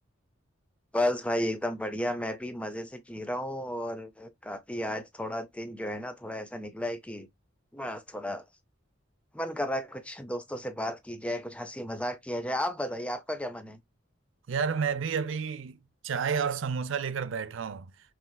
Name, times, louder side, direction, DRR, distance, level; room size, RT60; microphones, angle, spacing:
voice 1, 0.9-7.3 7.7-8.4 9.3-13.8, left 1 dB, 5° left, 0.4 m, -33 dB
voice 2, 14.5-15.8 16.0-17.9, right 6 dB, 70° right, 0.4 m, -30 dB
4.4 x 3.2 x 2.2 m
head